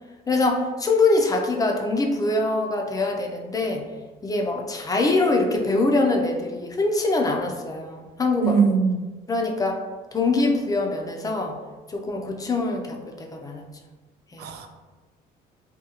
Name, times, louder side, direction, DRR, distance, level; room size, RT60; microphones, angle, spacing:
voice 1, 0.3-3.8 4.2-8.6 9.3-9.8 10.1-11.6 11.9-13.6 14.3-14.5, left 2 dB, 20° left, 2 dB, 0.4 m, -23 dB
voice 2, 8.4-9.0 14.4-14.7, right 5 dB, 75° right, 6 dB, 0.4 m, -21 dB
3.7 x 2.3 x 2.8 m, 1.2 s
cardioid pair, 110°, 17 cm